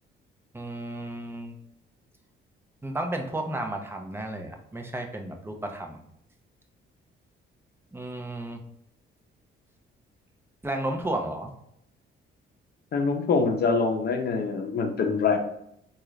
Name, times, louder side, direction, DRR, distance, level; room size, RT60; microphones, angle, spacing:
voice 1, 0.5-1.5 2.8-6.0 7.9-8.6 10.6-11.5, right 1 dB, 10° right, 4 dB, 0.6 m, -33 dB
voice 2, 12.9-15.4, left 4 dB, 55° left, 4 dB, 0.7 m, -24 dB
3.7 x 2.4 x 3.2 m, 0.73 s
cardioid pair, 90°, 20 cm